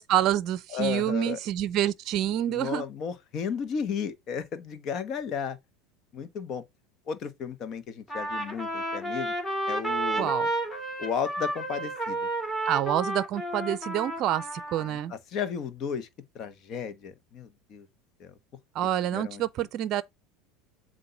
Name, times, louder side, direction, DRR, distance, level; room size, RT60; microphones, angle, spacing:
voice 1, 0.0-2.8 10.2-10.5 12.7-15.1 18.7-20.0, right 12 dB, 50° right, 0.5 m, -27 dB
voice 2, 0.7-1.4 2.5-5.6 6.1-6.6 7.1-9.3 9.7-10.3 11.0-12.2 14.8-16.1 16.3-17.9 18.2-18.3 19.1-19.4, left 6 dB, 45° left, 1.1 m, -34 dB
Trumpet, 8.1-15.0, right 1 dB, 15° left, 2.8 m, -31 dB
7.7 x 2.6 x 5.6 m
hypercardioid pair, 80°, 0 cm